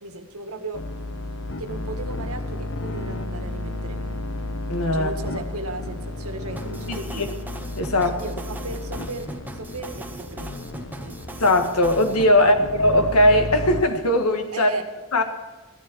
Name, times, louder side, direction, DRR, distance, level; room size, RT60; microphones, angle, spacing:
voice 1, 0.0-0.8 1.6-4.0 4.9-7.3 8.0-10.5 11.1-11.2 12.3-12.5 14.5-14.9, right 2 dB, 85° right, 1.8 m, -36 dB
sound 1, 0.7-13.8, left 2 dB, 60° left, 1.0 m, -33 dB
voice 2, 4.7-5.1 6.9-7.3 7.8-8.2 11.4-14.7 15.1-15.2, left 1 dB, 90° left, 1.8 m, -19 dB
sound 2, 6.6-12.3, right 2 dB, 10° right, 0.7 m, -39 dB
16.0 x 13.0 x 4.7 m
head